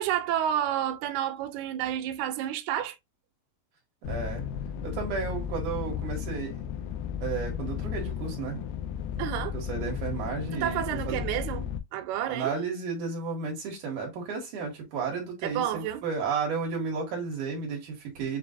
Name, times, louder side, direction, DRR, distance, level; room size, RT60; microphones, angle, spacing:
voice 1, 0.0-3.0 9.2-9.5 10.5-11.7 11.9-12.5 15.4-16.0, right 11 dB, 85° right, 1.7 m, -30 dB
sound 1, 4.0-11.8, left 8 dB, 85° left, 2.4 m, -34 dB
voice 2, 4.1-4.5 4.8-6.6 7.2-8.6 9.5-11.2 12.3-18.4, right 5 dB, 65° right, 2.8 m, -33 dB
7.1 x 2.4 x 2.4 m
omnidirectional pair, 4.1 m